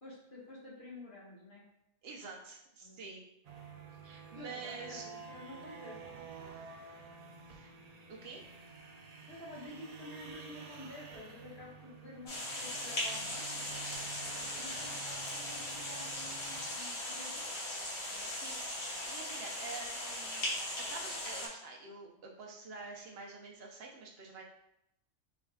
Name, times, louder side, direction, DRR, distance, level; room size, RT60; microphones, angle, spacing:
voice 1, 0.0-1.6 2.8-3.0 4.3-6.0 9.1-13.8 14.5-17.6 18.1-18.3, left 1 dB, 40° left, -6 dB, 1.3 m, -50 dB
voice 2, 2.0-3.2 4.0-5.1 7.5-7.7 8.1-8.4 18.4-24.4, right 4 dB, 55° right, 0 dB, 0.8 m, -48 dB
sound 1, 3.4-16.7, right 5 dB, 85° right, 0.3 m, -51 dB
sound 2, 12.3-21.5, left 1 dB, 60° left, 1.3 m, -39 dB
4.3 x 3.5 x 2.3 m, 0.82 s
omnidirectional pair, 1.4 m